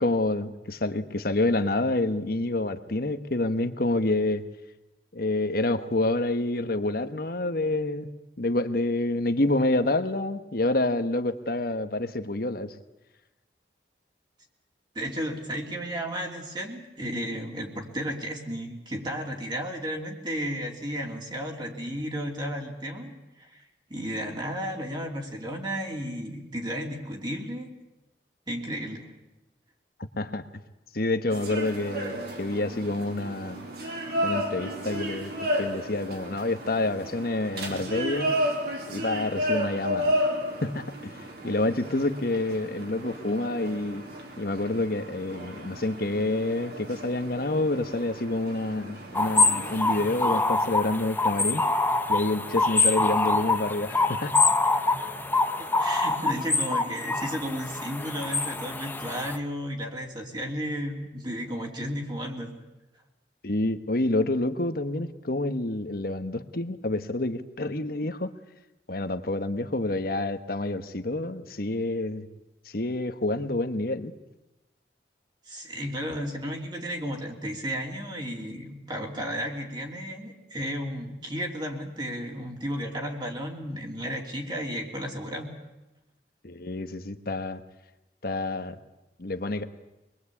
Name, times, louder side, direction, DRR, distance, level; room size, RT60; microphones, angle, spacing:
voice 1, 0.0-4.4 5.1-8.1 8.4-12.7 30.2-30.4 30.9-33.6 34.2-35.3 35.6-38.3 38.9-40.2 40.6-41.1 41.4-44.0 44.4-51.7 52.1-54.4 63.4-68.3 68.9-72.3 72.7-74.1 86.4-87.6 88.2-88.8 89.2-89.6, left 2 dB, 55° left, 9 dB, 1.4 m, -28 dB
voice 2, 14.9-23.1 23.4-23.6 23.9-27.7 28.5-29.1 55.6-62.5 75.5-85.5, equal, 25° right, 1 dB, 3.0 m, -33 dB
sound 1, 31.3-50.4, equal, 60° right, 4.2 m, -33 dB
sound 2, 49.1-59.4, left 3 dB, 10° left, 1.1 m, -25 dB
25.0 x 21.5 x 8.5 m, 0.99 s
head